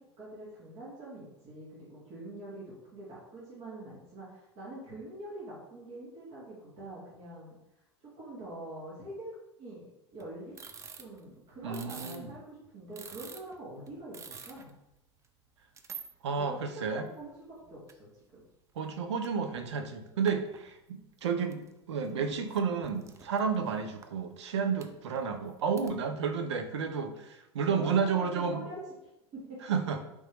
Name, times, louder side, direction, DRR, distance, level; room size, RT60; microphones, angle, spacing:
voice 1, 0.0-7.6 8.0-9.3 9.6-9.9 10.1-10.6 10.9-14.7 16.4-17.3 17.7-18.4 27.7-28.8 29.3-29.6, right 1 dB, 45° right, -7 dB, 1.4 m, -45 dB
sound 1, 10.2-12.3 12.6-12.7 13.0-14.7 14.9-15.0 15.8-16.1 16.6-16.7 17.1-17.9 18.4-18.5 19.1-19.3 19.5-19.7 20.3-20.8 21.3-21.7 22.0-24.0 24.8-25.9, right 6 dB, 20° right, 0.4 m, -48 dB
voice 2, 11.6-12.3 16.2-17.1 18.8-21.6 21.9-28.6 29.6-30.0, right 6 dB, 75° right, 7 dB, 0.5 m, -31 dB
3.6 x 3.0 x 3.0 m, 0.89 s
hypercardioid pair, 85°, 15 cm